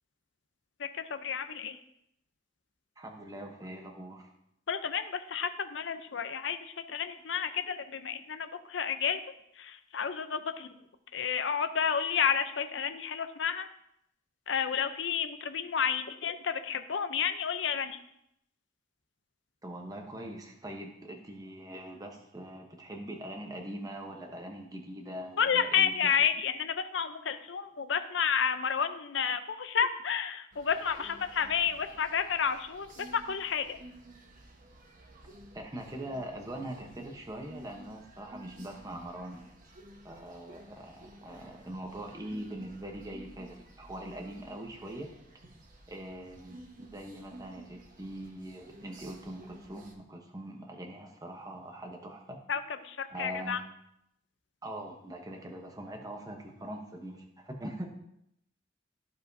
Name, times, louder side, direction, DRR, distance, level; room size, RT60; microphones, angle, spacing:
voice 1, 0.8-1.8 4.7-9.2 9.6-10.7 11.1-13.7 14.5-18.0 25.4-33.8 52.5-53.6, left 7 dB, 70° left, 9 dB, 0.6 m, -31 dB
voice 2, 3.0-4.3 19.6-26.1 35.5-39.5 40.0-45.1 45.9-46.6 46.9-52.4 53.1-53.6 54.6-57.9, right 1 dB, 20° right, 2 dB, 0.9 m, -42 dB
sound 1, 30.5-49.9, right 1 dB, 45° right, 1.2 m, -53 dB
14.0 x 5.0 x 2.7 m, 0.77 s
head